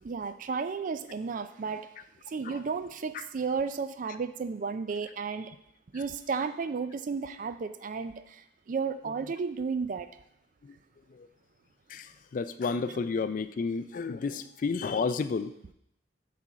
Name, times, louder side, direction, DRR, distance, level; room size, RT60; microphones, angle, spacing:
voice 1, 0.0-1.9 2.3-5.5 5.9-10.1, right 5 dB, 45° right, 11 dB, 0.4 m, -33 dB
voice 2, 11.9-15.5, left 4 dB, 45° left, 12 dB, 0.3 m, -31 dB
6.1 x 4.2 x 6.2 m, 0.78 s
head